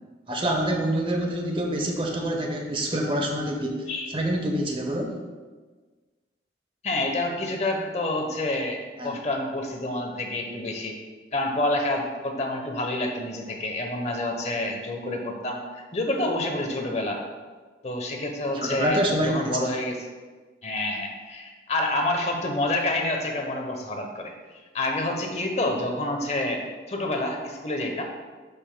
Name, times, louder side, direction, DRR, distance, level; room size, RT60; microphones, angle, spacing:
voice 1, 0.3-5.1 9.0-9.2 18.5-19.6, right 1 dB, 30° right, 2 dB, 0.8 m, -26 dB
voice 2, 6.8-11.0 11.3-17.2 17.8-20.0 20.6-24.3 24.7-26.6 26.9-28.0, left 2 dB, 35° left, 2 dB, 0.9 m, -28 dB
11.5 x 5.3 x 2.2 m, 1.4 s
head